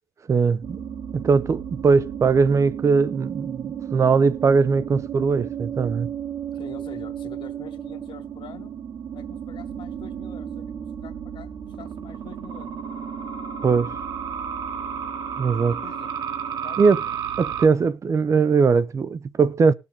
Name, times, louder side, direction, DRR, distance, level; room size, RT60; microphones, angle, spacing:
voice 1, 0.3-0.8 1.1-6.1 13.6-13.9 15.4-15.8 16.8-17.0 17.4-19.7, right 5 dB, 30° right, 0.6 m, -20 dB
sound 1, 0.6-17.7, right 8 dB, 45° right, 1.6 m, -33 dB
voice 2, 6.5-8.7 9.1-11.5 11.8-12.8 15.7-16.1 16.6-17.1, left 7 dB, 55° left, 1.9 m, -45 dB
19.0 x 6.6 x 3.6 m
cardioid pair, 150°, 10 cm